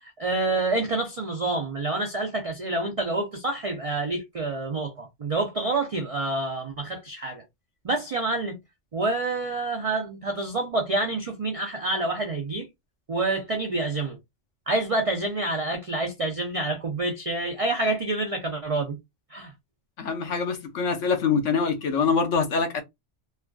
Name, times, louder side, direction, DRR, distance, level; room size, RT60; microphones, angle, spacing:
voice 1, 0.0-7.4 7.8-8.6 8.9-12.7 13.1-14.2 14.7-19.0 19.3-19.5, right 2 dB, 50° right, 0.4 m, -27 dB
voice 2, 20.0-22.8, left 5 dB, 85° left, 1.1 m, -24 dB
3.2 x 2.4 x 2.2 m
omnidirectional pair, 1.2 m